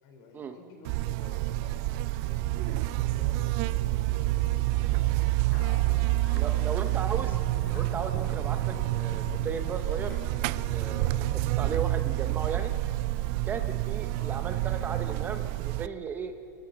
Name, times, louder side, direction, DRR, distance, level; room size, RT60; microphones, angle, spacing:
voice 1, 0.0-5.6 6.5-6.7 14.1-14.4, left 4 dB, 40° left, 4 dB, 4.6 m, -52 dB
Buzz, 0.8-15.9, right 18 dB, 40° right, 0.4 m, -28 dB
sound 1, 2.6-12.1, left 5 dB, 75° left, 3.3 m, -46 dB
sound 2, 5.3-11.0, equal, 20° left, 5.9 m, -46 dB
voice 2, 6.3-7.4 7.6-10.2 10.4-12.7 13.4-16.5, right 6 dB, 20° right, 7 dB, 0.8 m, -36 dB
27.5 x 14.0 x 7.5 m, 2.8 s
supercardioid pair, 150°, 10 cm